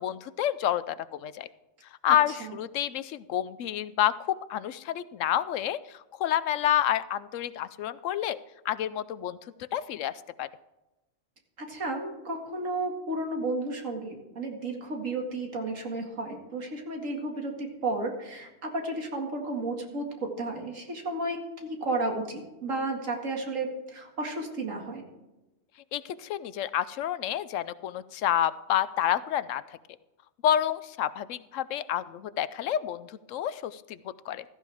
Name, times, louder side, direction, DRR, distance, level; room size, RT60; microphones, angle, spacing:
voice 1, 0.0-1.5 2.0-8.4 8.6-9.4 9.7-10.5 25.9-29.6 30.4-34.4, left 11 dB, 80° left, 16 dB, 0.9 m, -29 dB
voice 2, 2.1-2.5 11.6-25.0, right 2 dB, 85° right, 2 dB, 2.4 m, -33 dB
15.5 x 14.0 x 3.5 m, 1.0 s
omnidirectional pair, 1.3 m